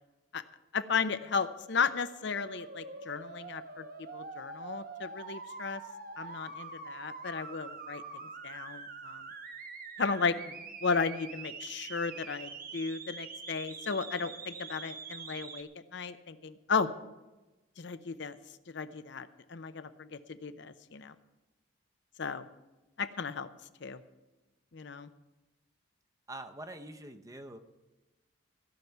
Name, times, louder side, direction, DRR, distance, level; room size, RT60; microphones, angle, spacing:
voice 1, 0.7-3.9 4.1-5.8 6.2-8.0 8.4-9.3 10.0-10.6 10.8-16.9 17.8-18.4 18.7-21.1 22.2-22.5 23.0-23.5 23.8-24.0 24.7-25.1, left 5 dB, 60° left, 11 dB, 0.6 m, -34 dB
sound 1, 2.3-15.6, right 4 dB, 45° right, 1.1 m, -45 dB
voice 2, 26.3-27.6, right 1 dB, 15° right, 8 dB, 0.7 m, -44 dB
15.5 x 5.9 x 9.3 m, 1.1 s
head